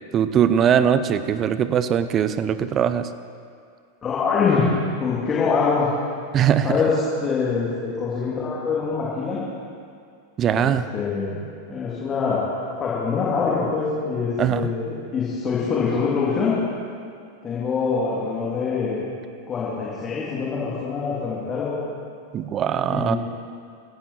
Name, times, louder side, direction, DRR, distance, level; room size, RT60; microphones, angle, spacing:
voice 1, 0.1-3.1 6.3-6.8 10.4-10.9 14.4-14.7 22.3-23.2, right 9 dB, 30° right, 13 dB, 0.7 m, -21 dB
voice 2, 4.0-4.7 5.0-5.9 6.6-9.4 10.5-12.4 12.8-16.5 17.4-19.0 19.5-21.8 22.9-23.2, left 5 dB, 25° left, -8 dB, 3.4 m, -24 dB
17.0 x 14.5 x 4.6 m, 2.3 s
figure-of-eight pair, 90°, 0 cm